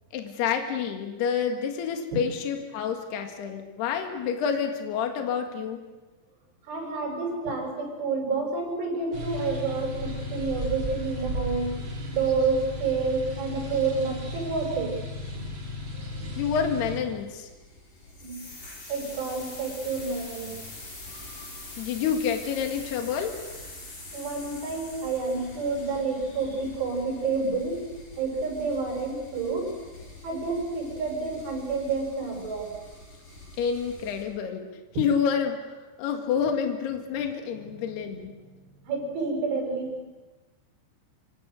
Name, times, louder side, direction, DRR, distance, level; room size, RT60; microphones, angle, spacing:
voice 1, 0.1-5.8 16.4-17.5 21.8-23.3 33.6-34.7 35.0-38.3, left 7 dB, 65° left, 4 dB, 3.8 m, -28 dB
voice 2, 6.6-11.8 12.1-15.0 15.3-15.4 18.2-18.4 18.9-20.6 24.1-27.9 28.2-29.7 30.2-32.7 37.8-37.9 38.8-40.0, right 4 dB, 90° right, 2 dB, 7.8 m, -29 dB
sound 1, 9.1-17.0, equal, 30° right, 3.8 m, -35 dB
sound 2, 16.1-34.2, left 1 dB, 45° left, 7.6 m, -48 dB
sound 3, 18.1-27.0, left 2 dB, 25° left, 4.9 m, -44 dB
26.0 x 25.5 x 6.5 m, 1.2 s
omnidirectional pair, 5.3 m